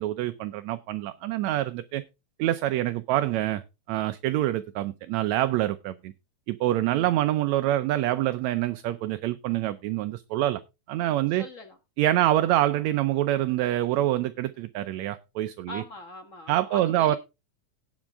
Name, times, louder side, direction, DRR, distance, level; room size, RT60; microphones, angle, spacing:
voice 1, 0.0-2.0 2.4-3.6 3.9-6.1 6.5-10.6 10.9-11.4 12.0-15.8 16.5-17.2, right 14 dB, 75° right, 1.9 m, -26 dB
voice 2, 11.4-11.8 15.7-17.2, left 2 dB, 35° left, 1.3 m, -41 dB
18.0 x 6.3 x 3.5 m
omnidirectional pair, 3.5 m